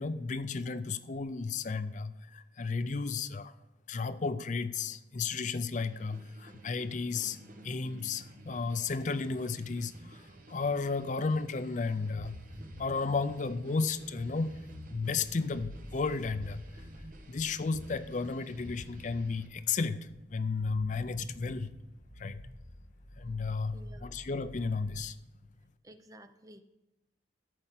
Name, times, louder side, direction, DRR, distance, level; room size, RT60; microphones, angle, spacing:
voice 1, 0.0-3.5 3.9-7.4 7.6-12.4 12.8-14.6 14.9-16.7 17.3-21.7 22.2-22.4 23.2-25.2, left 4 dB, 40° left, 0.5 m, -33 dB
sound 1, 5.8-19.5, right 1 dB, 45° right, 1.1 m, -53 dB
sound 2, 12.1-25.1, left 1 dB, 70° left, 2.3 m, -49 dB
voice 2, 23.7-24.1 25.8-26.6, right 1 dB, 20° right, 0.5 m, -53 dB
13.5 x 5.5 x 7.5 m
head